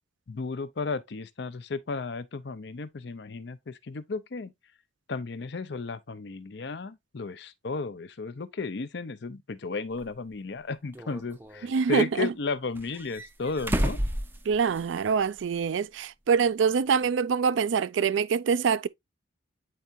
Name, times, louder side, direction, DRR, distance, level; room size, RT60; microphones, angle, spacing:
voice 1, 0.3-4.5 5.1-14.0, left 4 dB, 60° left, 0.6 m, -34 dB
sound 1, 10.0-10.1 10.9-11.8 12.7-15.1 15.4-15.5 17.1-17.2, right 1 dB, 10° right, 0.5 m, -32 dB
voice 2, 11.6-12.3 14.5-18.9, right 6 dB, 70° right, 0.3 m, -25 dB
8.5 x 4.6 x 2.5 m
head